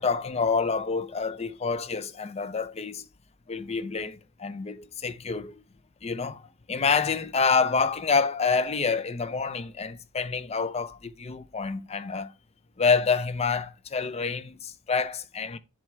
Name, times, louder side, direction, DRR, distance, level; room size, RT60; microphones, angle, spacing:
voice 1, 0.0-3.1 3.5-5.6 6.0-12.3 12.8-15.6, left 5 dB, 30° left, 0.5 m, -27 dB
7.6 x 3.3 x 5.9 m
head